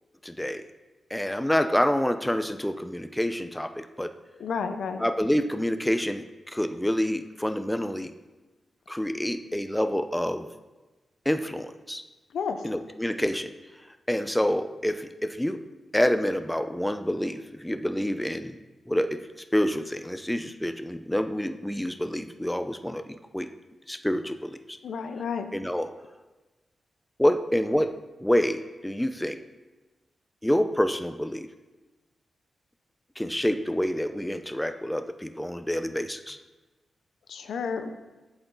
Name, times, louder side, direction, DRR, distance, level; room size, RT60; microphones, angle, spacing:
voice 1, 0.2-0.6 1.1-4.1 5.0-6.2 6.5-8.1 8.9-10.5 11.3-12.0 12.6-13.5 14.1-15.6 15.9-18.6 18.9-19.2 19.5-23.0 23.3-23.5 23.9-24.6 25.5-25.9 27.2-27.9 28.2-29.4 30.4-31.5 33.2-36.4, equal, 5° left, 9 dB, 0.5 m, -27 dB
voice 2, 4.4-5.1 12.3-12.6 24.8-25.5 37.3-37.9, left 6 dB, 85° left, 8 dB, 0.6 m, -31 dB
7.7 x 7.0 x 3.9 m, 1.2 s
cardioid pair, 75°, 0 cm